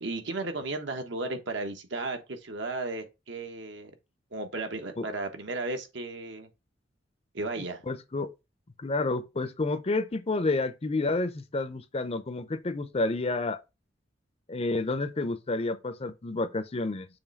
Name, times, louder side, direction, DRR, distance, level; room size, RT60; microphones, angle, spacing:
voice 1, 0.0-3.9 4.3-6.5 7.3-7.8, right 2 dB, 65° right, 1.2 m, -34 dB
voice 2, 7.9-8.3 8.8-13.6 14.5-17.1, left 2 dB, 30° left, 0.6 m, -30 dB
7.0 x 3.2 x 5.3 m
head